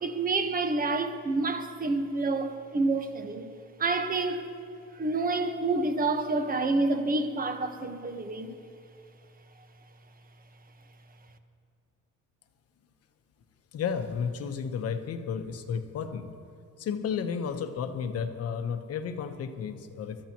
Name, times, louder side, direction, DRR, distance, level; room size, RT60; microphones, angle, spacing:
voice 1, 0.0-3.5 3.8-4.5 4.9-8.6, right 3 dB, 25° right, 1.3 m, -28 dB
voice 2, 13.7-16.3 16.8-20.3, left 6 dB, 50° left, 1.2 m, -32 dB
24.5 x 13.0 x 3.1 m
cardioid pair, 110°, 31 cm